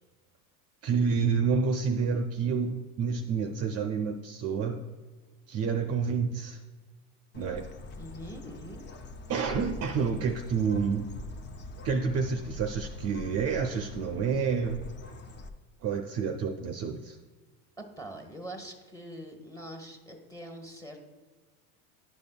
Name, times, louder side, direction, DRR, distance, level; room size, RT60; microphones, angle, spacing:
voice 1, 0.8-4.8 5.5-6.6 7.3-7.7 9.3-11.1 11.8-14.9 15.8-17.2, right 5 dB, 35° right, 4 dB, 0.5 m, -29 dB
Bird, 7.3-15.5, left 2 dB, 25° left, 0.5 m, -43 dB
voice 2, 8.0-8.8 17.8-21.0, right 1 dB, 10° left, 2 dB, 1.1 m, -43 dB
11.0 x 5.3 x 2.3 m, 1.4 s
supercardioid pair, 120°, 42 cm